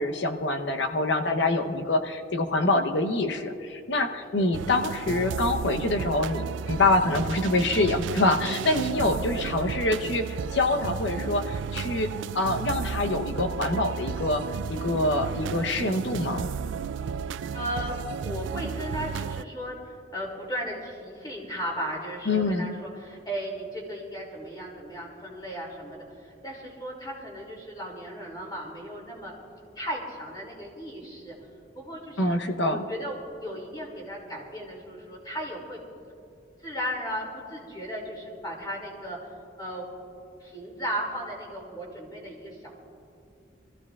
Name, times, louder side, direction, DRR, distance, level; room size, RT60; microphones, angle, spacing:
voice 1, 0.0-12.1 12.3-14.4 14.7-16.5 22.3-22.7 32.2-32.8, left 2 dB, 75° left, 6 dB, 0.9 m, -25 dB
sound 1, 4.5-19.4, right 6 dB, 85° right, 0.3 m, -33 dB
voice 2, 9.0-9.7 17.5-18.0 18.2-29.3 29.7-31.3 31.7-32.4 32.7-35.8 36.6-39.2 39.6-39.9 40.4-42.7, equal, 20° left, -2 dB, 2.6 m, -36 dB
24.5 x 15.0 x 2.4 m, 2.5 s
head